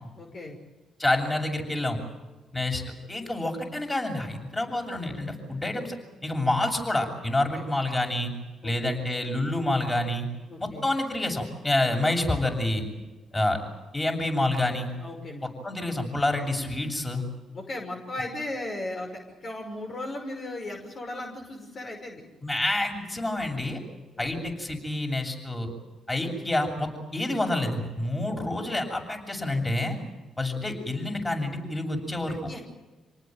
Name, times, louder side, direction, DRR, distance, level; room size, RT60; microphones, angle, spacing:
voice 1, 0.1-0.6 7.6-7.7 8.6-8.9 10.5-10.9 15.0-15.5 17.5-22.2 24.2-24.3 30.5-30.6 32.3-32.6, left 1 dB, 50° left, 2 dB, 5.9 m, -37 dB
voice 2, 1.0-2.0 2.5-2.8 3.1-6.0 6.2-8.3 8.6-10.3 10.6-12.8 13.3-13.6 13.9-14.9 15.6-17.2 22.4-23.8 24.2-25.7 26.1-30.0 30.4-32.6, left 1 dB, 20° left, 3 dB, 7.7 m, -28 dB
27.5 x 19.0 x 9.3 m, 1.2 s
supercardioid pair, 55°, 0 cm